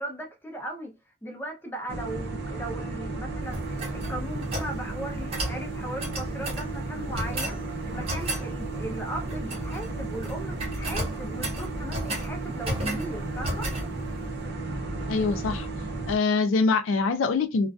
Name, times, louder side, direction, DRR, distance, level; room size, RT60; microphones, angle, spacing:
voice 1, 0.0-13.7, right 1 dB, 10° left, 0.5 m, -38 dB
sound 1, 1.9-16.2, right 2 dB, 55° right, 0.5 m, -33 dB
sound 2, 3.5-4.7 5.3-5.6 6.0-6.7 7.1-7.6 8.1-8.5 9.3-9.9 10.1-10.3 10.6-12.3 12.6-13.1 13.4-13.9, right 1 dB, 30° right, 0.8 m, -32 dB
voice 2, 15.1-15.7 16.1-17.7, left 4 dB, 85° left, 0.4 m, -24 dB
2.4 x 2.2 x 2.3 m
head